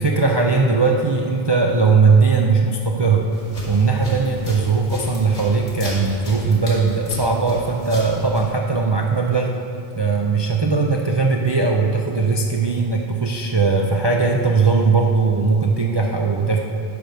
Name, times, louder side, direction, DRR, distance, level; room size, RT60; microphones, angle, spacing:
voice 1, 0.0-3.3 3.7-9.5 9.9-16.6, right 4 dB, 35° right, 0 dB, 0.4 m, -19 dB
sound 1, 3.3-8.4, left 1 dB, 85° left, 2.6 m, -34 dB
9.7 x 5.2 x 6.3 m, 2.5 s
omnidirectional pair, 1.2 m